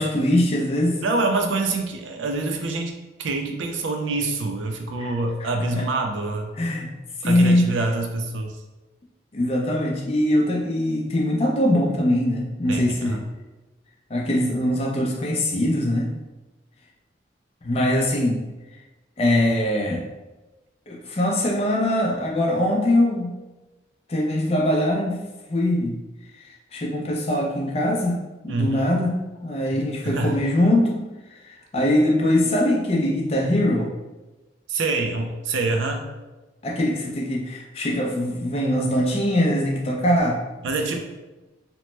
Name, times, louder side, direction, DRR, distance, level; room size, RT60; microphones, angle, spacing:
voice 1, 0.0-1.0 5.0-5.1 5.7-5.8 6.6-6.9 7.2-7.7 9.3-13.2 14.1-16.1 17.6-18.4 19.2-20.0 20.9-23.3 24.1-25.2 25.5-26.0 26.7-28.2 28.4-29.1 29.4-31.1 31.4-33.9 36.6-40.4, left 1 dB, 30° left, 0 dB, 0.4 m, -22 dB
voice 2, 1.0-2.9 3.2-6.5 7.2-8.6 12.7-13.2 28.5-28.9 29.7-30.4 34.7-36.1 40.6-41.0, right 3 dB, 80° right, 4 dB, 0.4 m, -26 dB
2.9 x 2.1 x 3.1 m, 1.1 s
head